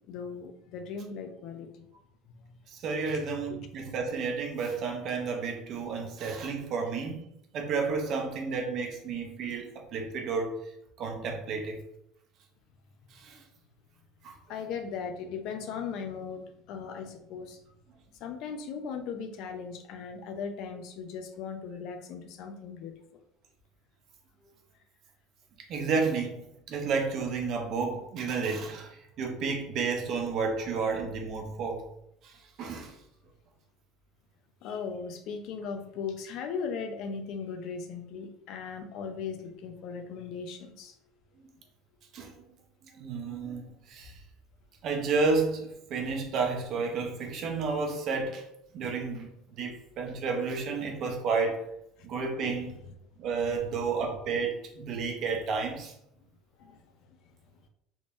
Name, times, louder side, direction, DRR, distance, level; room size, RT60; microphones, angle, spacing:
voice 1, 0.0-1.9 3.1-3.2 3.5-3.6 14.5-17.6 18.2-22.9 34.6-41.0 56.6-56.8, left 6 dB, 55° left, 6 dB, 0.5 m, -38 dB
voice 2, 2.7-7.3 7.5-10.6 11.0-11.8 13.1-13.4 14.2-14.4 25.6-31.9 32.2-33.0 42.1-42.4 42.9-44.1 44.8-48.4 48.7-51.7 52.0-52.8 53.2-55.9, right 4 dB, 45° right, 3 dB, 0.7 m, -31 dB
3.6 x 3.1 x 2.5 m, 0.79 s
cardioid pair, 140°, 0 cm